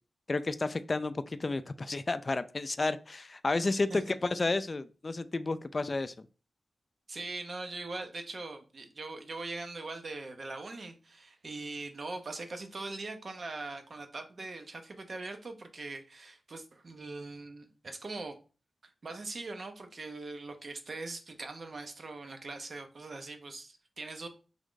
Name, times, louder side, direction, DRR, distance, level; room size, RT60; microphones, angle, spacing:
voice 1, 0.3-6.2, left 3 dB, 45° left, 0.3 m, -31 dB
voice 2, 3.5-4.2 7.1-18.4 19.0-24.3, right 3 dB, 60° right, 0.7 m, -41 dB
3.5 x 2.5 x 3.7 m
cardioid pair, 50°, 0 cm